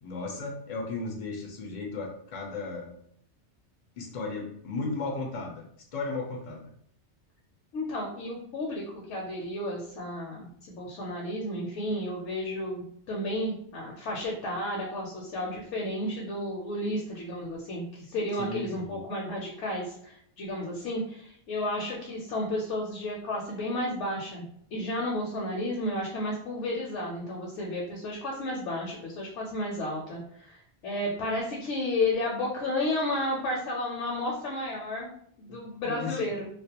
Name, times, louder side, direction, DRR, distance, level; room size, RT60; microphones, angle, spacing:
voice 1, 0.0-2.9 4.0-5.6 5.9-6.7 18.4-19.0 35.5-35.6 35.8-36.2, left 3 dB, 60° left, 0 dB, 0.4 m, -35 dB
voice 2, 7.7-24.4 24.7-35.1 35.4-36.5, left 1 dB, 75° left, -1 dB, 0.9 m, -32 dB
2.4 x 2.1 x 2.8 m, 0.67 s
omnidirectional pair, 1.2 m